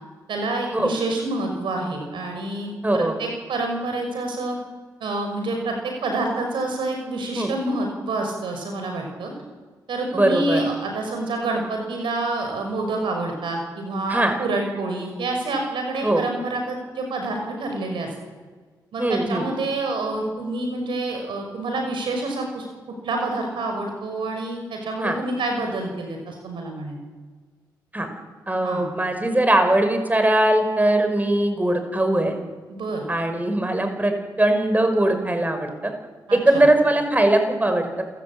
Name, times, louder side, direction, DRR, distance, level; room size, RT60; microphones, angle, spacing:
voice 1, 0.3-4.6 5.0-9.3 9.9-18.1 18.9-22.7 23.0-27.0 28.6-28.9 32.7-33.0 36.3-36.6, right 2 dB, 75° right, 3 dB, 6.0 m, -27 dB
voice 2, 2.8-3.2 7.3-7.5 10.1-10.6 14.1-14.3 16.0-16.2 19.0-19.5 25.0-25.2 27.9-28.1 28.5-32.3 33.1-34.1 34.4-35.9 36.3-38.0, right 1 dB, 20° right, 6 dB, 5.5 m, -20 dB
28.0 x 15.5 x 8.8 m, 1.5 s
supercardioid pair, 50°, 8 cm